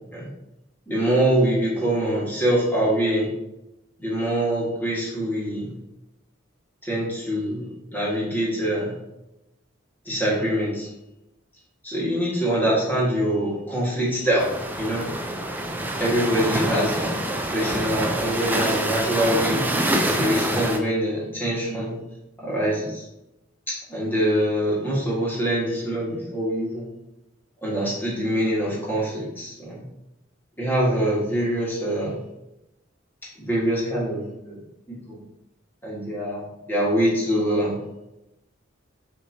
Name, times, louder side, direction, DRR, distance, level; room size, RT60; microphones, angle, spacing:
voice 1, 0.9-3.3 4.0-5.7 6.8-8.9 10.0-10.9 11.8-14.5 14.8-15.1 16.0-17.1 17.5-19.6 20.1-22.0 22.4-23.0 23.9-26.9 27.6-29.8 30.6-32.2 33.4-34.6 34.9-35.2 35.8-36.4 36.7-37.8, right 1 dB, 10° left, -7 dB, 1.6 m, -24 dB
sound 1, 14.4-20.8, right 1 dB, 10° right, 0.3 m, -26 dB
6.2 x 3.0 x 2.8 m, 0.91 s
head